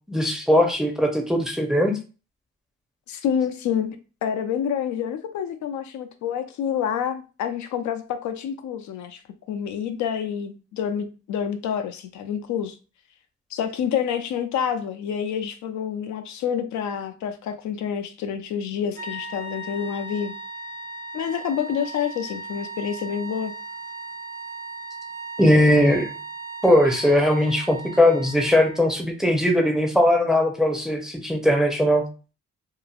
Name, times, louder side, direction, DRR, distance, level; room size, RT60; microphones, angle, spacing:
voice 1, 0.1-1.9 25.4-26.1 26.6-32.0, left 1 dB, ahead, 0.6 m, -19 dB
voice 2, 3.1-9.2 9.5-12.8 13.5-20.3 21.1-23.5, left 8 dB, 70° left, 0.5 m, -28 dB
sound 1, 18.9-28.9, right 2 dB, 80° right, 0.9 m, -37 dB
2.9 x 2.4 x 2.3 m
cardioid pair, 90°, 30 cm